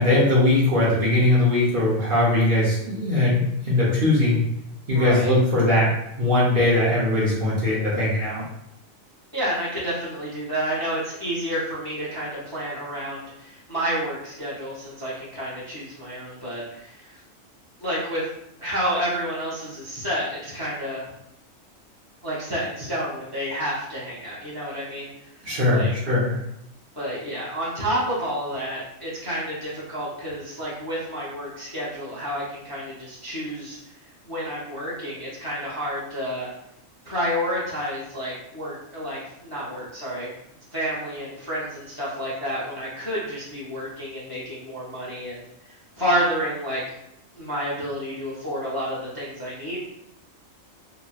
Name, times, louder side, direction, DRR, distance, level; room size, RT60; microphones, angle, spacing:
voice 1, 0.0-4.4 4.9-5.9 6.2-8.4 25.4-26.4, left 1 dB, 45° right, -7 dB, 0.9 m, -20 dB
voice 2, 4.9-5.3 9.3-17.2 17.8-18.3 18.6-21.1 22.2-25.1 25.7-25.9 27.0-33.8 34.2-36.5 37.0-40.3 40.7-45.5 46.0-46.8 47.4-49.8, equal, 25° left, -8 dB, 0.6 m, -29 dB
3.0 x 2.5 x 2.3 m, 0.79 s
omnidirectional pair, 1.4 m